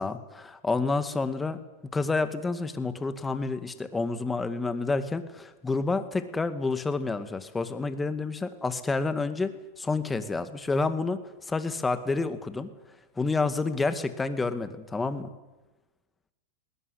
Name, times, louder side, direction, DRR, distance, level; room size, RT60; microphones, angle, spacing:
voice 1, 0.0-1.6 1.9-11.2 11.5-12.7 13.2-15.3, left 3 dB, 15° left, 10 dB, 2.0 m, -29 dB
20.5 x 18.0 x 10.0 m, 1.1 s
hypercardioid pair, 115°, 0 cm